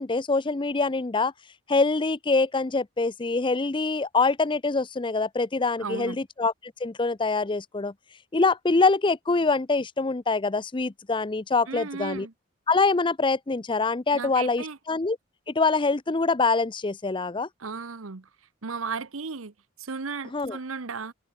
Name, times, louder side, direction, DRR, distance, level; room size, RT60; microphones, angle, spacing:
voice 1, 0.0-1.3 1.7-6.5 6.8-7.9 8.3-12.3 12.7-15.2 15.5-17.5 20.3-20.6, left 3 dB, 25° left, 0.6 m, -24 dB
voice 2, 5.8-6.2 11.7-12.3 14.1-14.8 17.6-18.3 18.6-21.1, right 4 dB, 80° right, 1.0 m, -35 dB
head